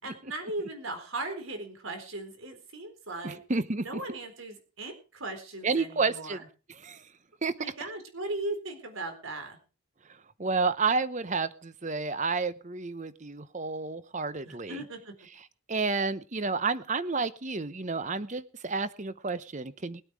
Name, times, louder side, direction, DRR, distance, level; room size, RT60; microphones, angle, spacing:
voice 1, 0.0-3.4 3.8-6.5 7.6-9.6 14.4-15.1, right 2 dB, 65° right, 6 dB, 4.1 m, -38 dB
voice 2, 3.2-3.8 5.6-6.4 6.7-7.0 7.4-7.5 10.4-14.8 15.7-20.0, right 4 dB, 35° right, 15 dB, 0.8 m, -30 dB
20.5 x 8.8 x 4.9 m, 0.35 s
head